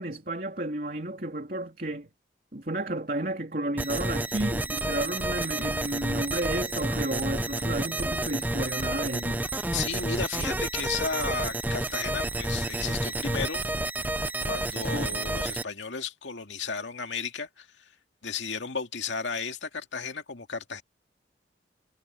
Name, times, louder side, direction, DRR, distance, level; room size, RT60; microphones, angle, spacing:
voice 1, 0.0-2.1 2.5-9.5 14.9-15.2, right 1 dB, 50° right, 3.0 m, -32 dB
sound 1, 3.8-15.6, right 2 dB, 10° right, 0.6 m, -30 dB
voice 2, 9.7-13.6 14.4-17.9 18.2-20.8, left 5 dB, 85° left, 2.2 m, -34 dB
head